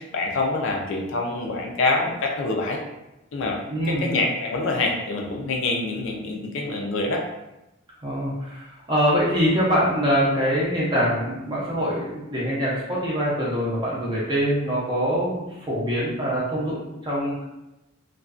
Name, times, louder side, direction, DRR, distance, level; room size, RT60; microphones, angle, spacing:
voice 1, 0.0-2.8 3.3-3.6 3.9-7.2, left 3 dB, 65° left, 1 dB, 0.4 m, -25 dB
voice 2, 3.7-4.1 8.0-17.4, equal, 20° right, -6 dB, 0.5 m, -24 dB
2.4 x 2.2 x 2.3 m, 0.95 s
head